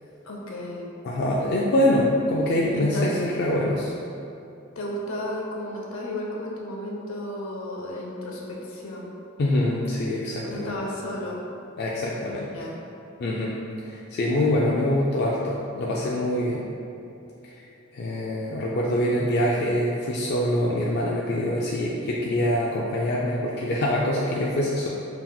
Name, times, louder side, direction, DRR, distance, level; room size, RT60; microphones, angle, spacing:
voice 1, 0.2-0.9 2.7-3.2 4.8-9.1 10.4-11.4 12.4-12.8, left 1 dB, 75° left, -2 dB, 0.7 m, -33 dB
voice 2, 1.0-3.9 9.4-10.7 11.8-12.5 13.2-13.5 13.8-16.6 17.9-24.9, left 1 dB, 50° left, -4 dB, 0.3 m, -24 dB
5.6 x 2.9 x 2.2 m, 2.7 s
head